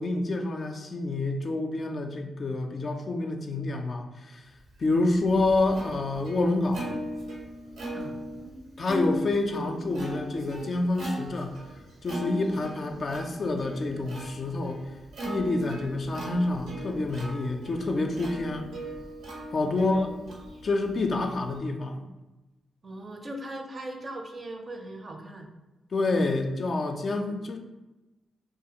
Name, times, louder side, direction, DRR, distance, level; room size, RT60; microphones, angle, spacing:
voice 1, 0.0-7.0 8.8-11.6 12.0-14.9 15.2-18.7 19.5-20.1 20.6-22.0 25.9-27.6, left 2 dB, 55° left, 4 dB, 0.3 m, -28 dB
Plucked string instrument, 4.8-21.6, equal, 80° right, 0.7 m, -38 dB
voice 2, 19.7-20.1 22.8-25.5, right 1 dB, 45° right, 3 dB, 0.5 m, -39 dB
2.5 x 2.3 x 2.8 m, 1.1 s
supercardioid pair, 45°, 0 cm